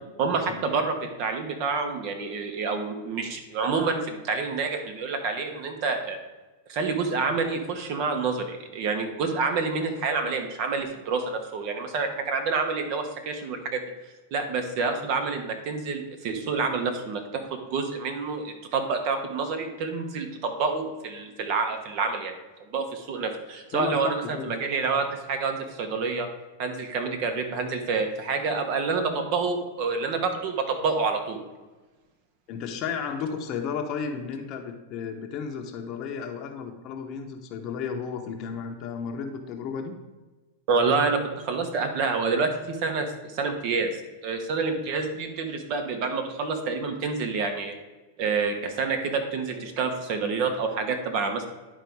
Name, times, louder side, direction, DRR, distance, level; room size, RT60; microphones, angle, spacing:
voice 1, 0.2-6.2 6.7-13.9 14.3-22.4 22.7-26.3 26.6-31.4 40.7-44.0 44.2-47.8 48.2-51.4, right 4 dB, 50° right, 6 dB, 1.4 m, -28 dB
voice 2, 23.7-24.6 32.5-40.0, left 6 dB, 40° left, 3 dB, 0.9 m, -33 dB
10.5 x 4.1 x 4.7 m, 1.2 s
hypercardioid pair, 125°, 0 cm